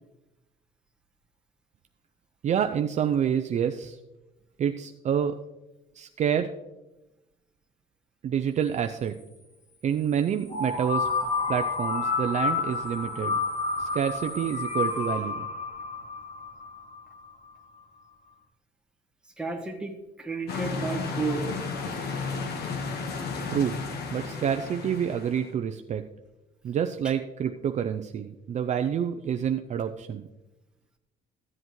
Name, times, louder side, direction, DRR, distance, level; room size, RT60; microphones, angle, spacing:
voice 1, 2.4-4.0 4.6-5.4 6.0-6.5 8.2-9.2 9.8-11.1 11.5-13.3 13.8-15.5 23.5-23.8 24.1-26.0 26.6-30.3, right 8 dB, 45° right, 7 dB, 0.5 m, -28 dB
sound 1, 10.5-17.3, left 4 dB, 40° left, 3.4 m, -30 dB
voice 2, 19.4-21.5, right 4 dB, 5° right, 1 dB, 1.6 m, -32 dB
sound 2, 20.5-25.5, left 4 dB, 70° left, 1.3 m, -33 dB
14.5 x 7.8 x 3.1 m, 1.0 s
cardioid pair, 110°, 17 cm